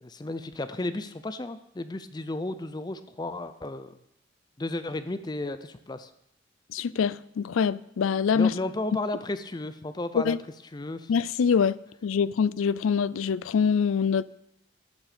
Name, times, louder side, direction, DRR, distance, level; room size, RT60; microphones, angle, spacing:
voice 1, 0.0-4.0 4.6-6.1 8.3-10.4 10.7-11.1, left 2 dB, 20° left, 0.5 m, -33 dB
voice 2, 6.7-8.5 10.1-10.4 11.1-11.8 12.0-14.2, left 6 dB, 85° left, 0.4 m, -24 dB
11.5 x 6.2 x 6.8 m
head